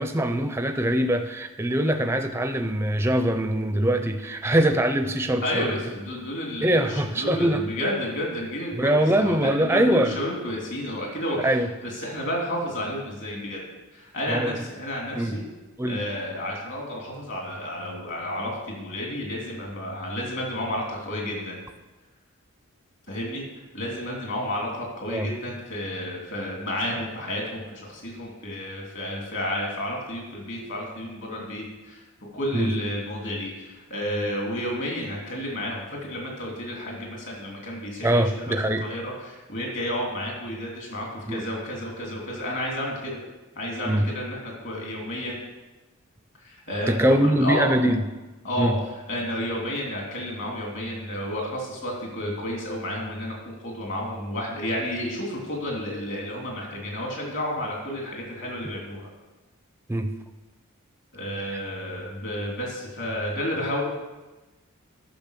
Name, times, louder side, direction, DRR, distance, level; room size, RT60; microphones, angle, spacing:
voice 1, 0.0-5.7 6.6-7.6 8.7-10.1 11.4-11.7 14.3-14.5 15.2-15.4 15.8-16.0 25.1-25.3 32.5-32.7 38.0-38.8 41.3-41.5 43.9-44.0 46.9-48.0 48.6-48.7 59.9-60.1 61.5-61.6, right 1 dB, 10° right, 7 dB, 0.5 m, -23 dB
voice 2, 5.4-13.6 13.9-15.4 15.8-21.6 23.1-23.4 23.7-32.0 32.3-43.2 43.6-45.4 46.4-47.7 48.4-48.7 49.1-59.1 61.1-63.8, left 1 dB, 55° left, -1 dB, 3.3 m, -31 dB
10.5 x 6.5 x 6.7 m, 1.1 s
head